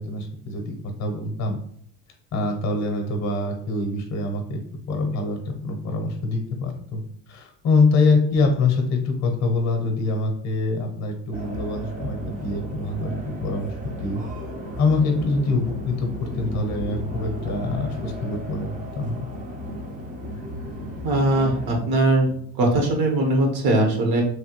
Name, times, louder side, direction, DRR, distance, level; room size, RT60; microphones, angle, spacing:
voice 1, 0.0-1.6 2.3-4.6 4.9-7.0 7.3-14.2 14.8-18.7 19.0-19.3, left 3 dB, 40° left, 3 dB, 0.7 m, -24 dB
sound 1, 11.3-21.8, equal, 20° right, 0.5 m, -34 dB
voice 2, 21.0-24.2, right 2 dB, 60° right, 1 dB, 0.9 m, -20 dB
3.1 x 2.2 x 2.9 m, 0.63 s
cardioid pair, 120°, 43 cm